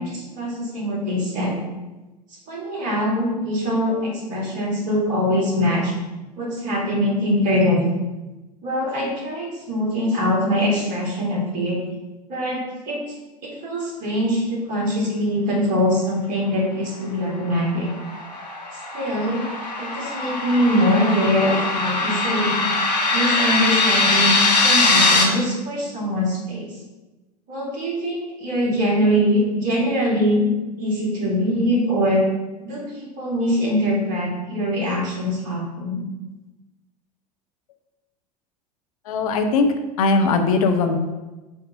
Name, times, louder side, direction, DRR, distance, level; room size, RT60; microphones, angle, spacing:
voice 1, 0.0-1.6 2.5-5.9 6.4-7.9 8.6-11.8 12.3-13.0 13.4-17.9 18.9-19.5 19.8-22.7 23.1-24.4 24.6-26.6 27.5-30.5 30.8-32.2 32.6-36.0, equal, 40° right, -2 dB, 2.1 m, -23 dB
sound 1, 17.5-25.2, left 3 dB, 85° left, 1.2 m, -21 dB
voice 2, 39.1-39.7 40.0-41.0, left 3 dB, 60° left, 5 dB, 0.7 m, -19 dB
7.0 x 2.8 x 5.3 m, 1.1 s
figure-of-eight pair, 80°, 21 cm